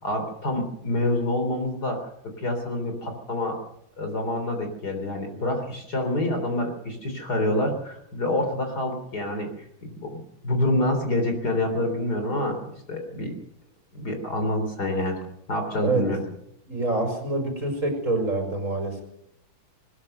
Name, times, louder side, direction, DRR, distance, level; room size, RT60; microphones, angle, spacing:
voice 1, 0.0-3.6 4.0-9.5 9.8-13.3 13.9-15.2 15.5-16.2, left 1 dB, 50° left, 5 dB, 4.0 m, -27 dB
voice 2, 16.7-19.0, right 2 dB, 40° right, 4 dB, 5.7 m, -26 dB
20.5 x 20.0 x 6.7 m, 0.74 s
omnidirectional pair, 2.2 m